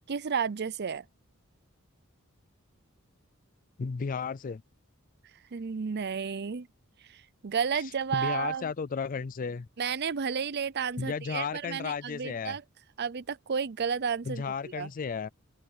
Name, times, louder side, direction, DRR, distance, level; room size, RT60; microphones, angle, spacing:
voice 1, 0.1-1.0 5.5-6.7 7.1-8.7 9.8-12.6 13.0-14.9, right 6 dB, 50° right, 0.6 m, -32 dB
voice 2, 3.8-4.6 8.1-9.7 11.0-12.6 14.3-15.3, left 5 dB, 40° left, 0.4 m, -33 dB
open air
head